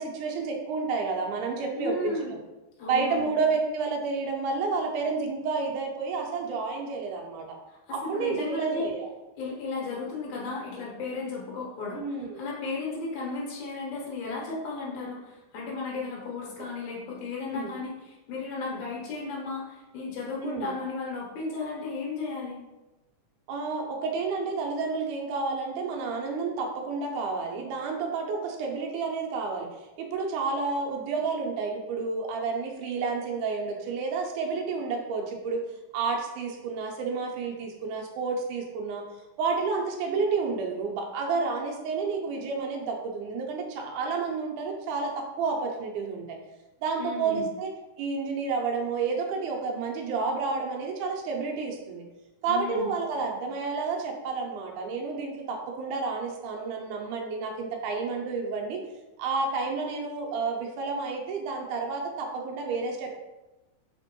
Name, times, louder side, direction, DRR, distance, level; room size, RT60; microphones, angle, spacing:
voice 1, 0.0-2.2 2.9-7.6 7.9-9.1 12.0-12.4 17.4-17.7 20.4-20.7 23.5-35.6 35.9-39.0 39.4-46.4 46.8-47.7 48.0-52.0 52.4-58.8 59.2-63.1, right 4 dB, 80° right, 1 dB, 2.1 m, -30 dB
voice 2, 1.7-2.3 2.8-3.3 7.7-8.9 9.4-22.6 47.0-47.5 52.5-52.9, left 3 dB, 70° left, -4 dB, 2.4 m, -34 dB
5.0 x 3.4 x 2.9 m, 1.0 s
omnidirectional pair, 3.8 m